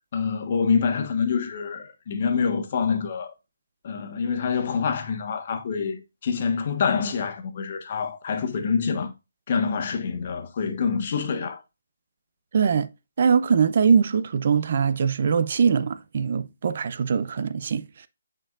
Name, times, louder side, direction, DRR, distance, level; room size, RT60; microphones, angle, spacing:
voice 1, 0.1-3.3 3.8-9.1 9.5-11.6, left 6 dB, 40° left, 1.2 m, -26 dB
voice 2, 12.5-12.9 13.2-17.8, right 6 dB, 50° right, 0.5 m, -22 dB
8.8 x 4.5 x 2.5 m
hypercardioid pair, 160°, 0 cm